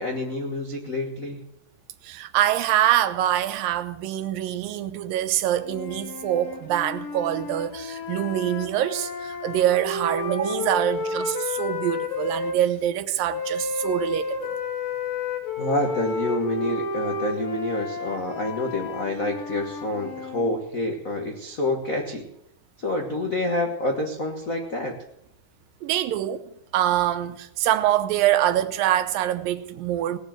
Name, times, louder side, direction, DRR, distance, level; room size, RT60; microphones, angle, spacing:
voice 1, 0.0-1.4 15.6-22.3 22.8-25.0, left 2 dB, 85° left, 0.7 m, -28 dB
voice 2, 2.0-14.5 25.8-26.4 26.7-30.2, right 12 dB, 85° right, 2.5 m, -24 dB
sound 1, 5.6-12.6 13.3-20.5, left 3 dB, 50° left, 2.4 m, -31 dB
18.0 x 7.4 x 7.6 m
omnidirectional pair, 4.0 m